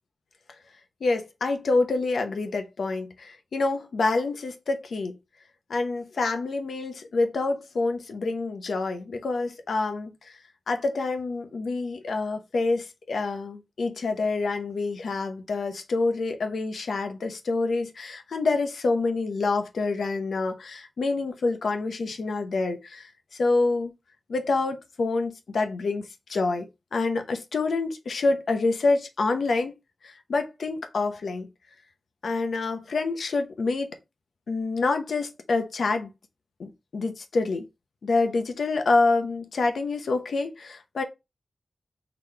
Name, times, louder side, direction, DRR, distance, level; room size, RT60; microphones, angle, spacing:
voice 1, 1.0-5.2 5.7-10.4 10.7-23.9 24.3-29.7 30.0-31.5 32.2-34.0 34.5-36.1 36.6-37.7 38.0-41.0, left 3 dB, 85° left, 0.7 m, -27 dB
4.0 x 3.1 x 3.2 m
wide cardioid pair, 100°, 0 cm